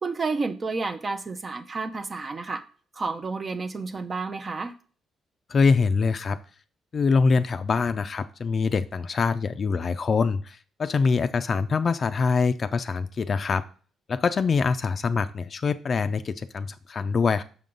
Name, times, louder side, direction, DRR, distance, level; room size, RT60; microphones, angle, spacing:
voice 1, 0.0-2.6 2.9-4.8, right 4 dB, 35° right, 7 dB, 0.5 m, -30 dB
voice 2, 5.5-6.4 6.9-13.6 14.1-17.4, left 5 dB, 45° left, 11 dB, 0.4 m, -24 dB
5.8 x 5.4 x 3.8 m, 0.40 s
cardioid pair, 90°, 0 cm